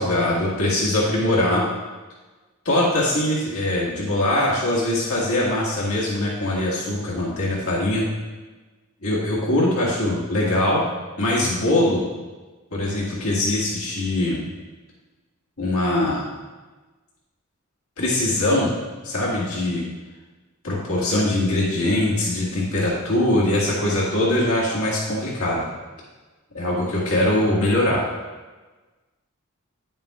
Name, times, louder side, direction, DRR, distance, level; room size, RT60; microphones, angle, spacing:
voice 1, 0.0-1.6 2.6-8.0 9.0-10.8 11.2-12.0 12.7-14.4 15.6-16.3 18.0-18.7 19.0-19.8 20.6-25.7 26.5-28.0, left 1 dB, 85° left, -5 dB, 1.8 m, -22 dB
10.0 x 7.3 x 2.4 m, 1.3 s
head